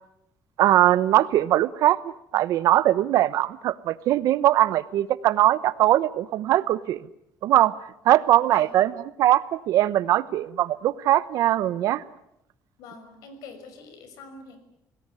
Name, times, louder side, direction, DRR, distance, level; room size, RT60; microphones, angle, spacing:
voice 1, 0.6-7.0 7.4-7.7 8.0-8.9 9.2-12.0, right 13 dB, 65° right, 17 dB, 1.0 m, -21 dB
voice 2, 8.5-8.9 12.8-14.6, left 4 dB, 75° left, 9 dB, 5.8 m, -44 dB
27.5 x 18.5 x 9.6 m, 0.79 s
cardioid pair, 165°, 6 cm